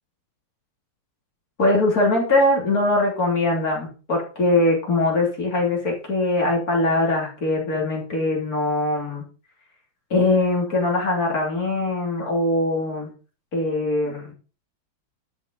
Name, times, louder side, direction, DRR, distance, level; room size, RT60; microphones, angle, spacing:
voice 1, 1.6-9.2 10.1-13.1 13.5-14.3, left 2 dB, 40° left, -1 dB, 3.4 m, -22 dB
11.5 x 5.7 x 5.3 m, 0.36 s
omnidirectional pair, 2.3 m